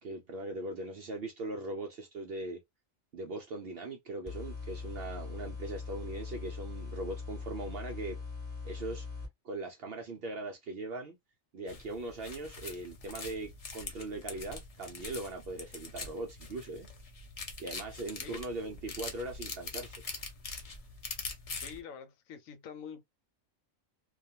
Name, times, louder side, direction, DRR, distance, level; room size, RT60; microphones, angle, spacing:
voice 1, 0.0-2.6 3.1-8.2 8.6-9.1 9.4-11.2 11.5-16.9 17.6-20.0, right 2 dB, 65° right, 0.6 m, -40 dB
sound 1, 4.3-9.3, left 4 dB, 10° right, 1.2 m, -41 dB
sound 2, 11.7-21.8, left 4 dB, 55° left, 0.4 m, -44 dB
voice 2, 21.6-23.0, left 7 dB, 80° left, 1.0 m, -46 dB
2.3 x 2.3 x 2.7 m
omnidirectional pair, 1.4 m